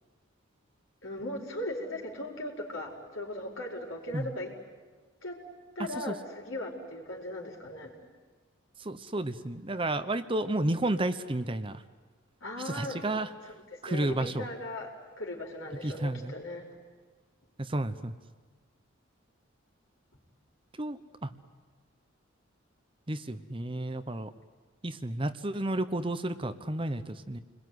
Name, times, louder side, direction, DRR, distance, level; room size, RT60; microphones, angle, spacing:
voice 1, 1.0-4.5 5.2-5.4 5.7-7.9 12.4-13.0 13.9-14.9 15.2-16.7, left 1 dB, 80° left, 0 dB, 4.8 m, -38 dB
voice 2, 8.8-11.8 12.6-13.3 13.8-14.5 15.8-16.3 17.6-18.1 20.8-21.3 23.1-24.3 24.8-27.4, right 1 dB, 25° right, 10 dB, 0.9 m, -32 dB
28.5 x 21.0 x 9.6 m, 1.4 s
head